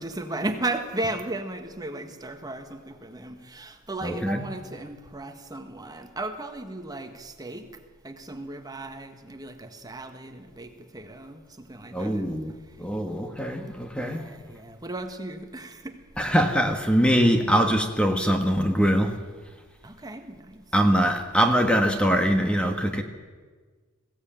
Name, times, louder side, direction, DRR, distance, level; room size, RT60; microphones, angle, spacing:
voice 1, 0.0-7.7 8.0-12.2 14.0-16.0 19.8-20.6, right 2 dB, 20° right, 6 dB, 1.5 m, -35 dB
voice 2, 4.0-4.4 11.9-12.5 12.8-14.3 16.2-19.2 20.7-23.0, equal, 5° left, 5 dB, 1.4 m, -23 dB
21.0 x 16.0 x 8.9 m, 1.5 s
head